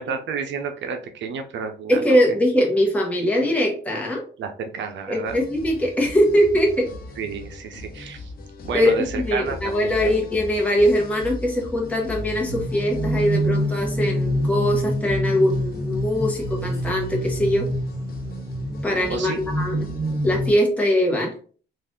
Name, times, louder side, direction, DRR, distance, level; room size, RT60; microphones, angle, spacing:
voice 1, 0.0-2.2 4.4-5.4 7.2-8.3 8.6-10.1 19.1-19.4, right 6 dB, 65° right, 5 dB, 0.6 m, -31 dB
voice 2, 1.9-4.2 5.1-6.9 8.7-17.7 18.8-19.9 20.2-21.3, equal, 5° left, -2 dB, 1.1 m, -21 dB
sound 1, 5.2-20.5, left 3 dB, 50° left, 0.8 m, -38 dB
sound 2, 12.1-20.5, equal, 15° right, 1.4 m, -27 dB
3.3 x 2.5 x 3.6 m, 0.42 s
cardioid pair, 90°, 20 cm